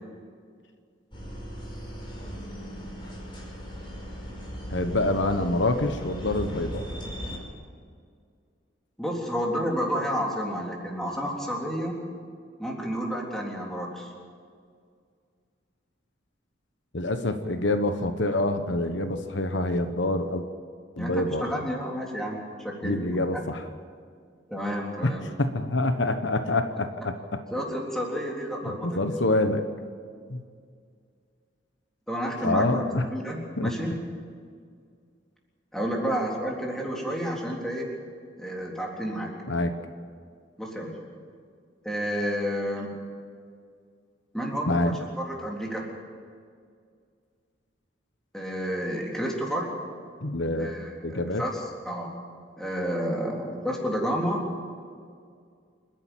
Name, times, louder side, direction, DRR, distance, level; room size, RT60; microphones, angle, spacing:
sound 1, 1.1-7.4, equal, 25° left, 5.1 m, -37 dB
voice 1, 4.7-6.8 16.9-20.4 21.0-21.5 22.8-23.6 25.0-25.1 25.4-27.2 28.7-29.6 30.3-30.4 32.4-33.1 33.6-33.7 39.5-39.7 44.7-45.0 50.2-50.7 51.0-51.4, left 2 dB, 70° left, 8 dB, 1.2 m, -26 dB
voice 2, 9.0-12.0 12.6-14.1 21.0-23.0 23.3-23.4 24.5-25.3 27.5-29.1 32.1-33.9 35.7-37.9 38.4-39.3 40.6-40.9 41.8-43.0 44.3-45.8 48.3-49.7 50.6-52.1 52.6-54.4, equal, ahead, -2 dB, 3.5 m, -30 dB
28.0 x 10.5 x 9.1 m, 2.1 s
head